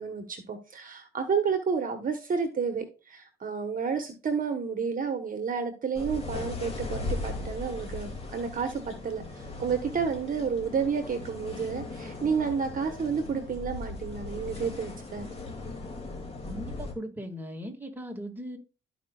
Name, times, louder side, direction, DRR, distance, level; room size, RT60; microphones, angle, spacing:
voice 1, 0.0-15.3, right 6 dB, 45° right, 6 dB, 1.2 m, -30 dB
sound 1, 5.9-16.9, left 2 dB, 30° left, 2.6 m, -38 dB
voice 2, 16.5-18.6, equal, 10° right, 2 dB, 2.1 m, -38 dB
13.0 x 5.1 x 2.4 m, 0.33 s
cardioid pair, 90°, 20 cm